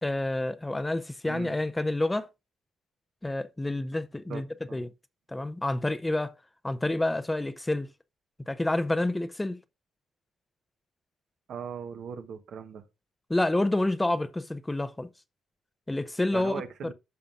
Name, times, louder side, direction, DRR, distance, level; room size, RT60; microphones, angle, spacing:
voice 1, 0.0-2.3 3.2-4.4 4.7-4.9 5.3-6.3 6.6-7.9 8.5-9.6 13.3-15.1 15.9-16.6, left 1 dB, 10° left, 0.6 m, -28 dB
voice 2, 1.2-1.5 4.3-4.4 4.7-4.8 11.5-12.8 16.3-16.9, right 7 dB, 65° right, 1.1 m, -39 dB
14.0 x 5.6 x 2.5 m
cardioid pair, 90°, 0 cm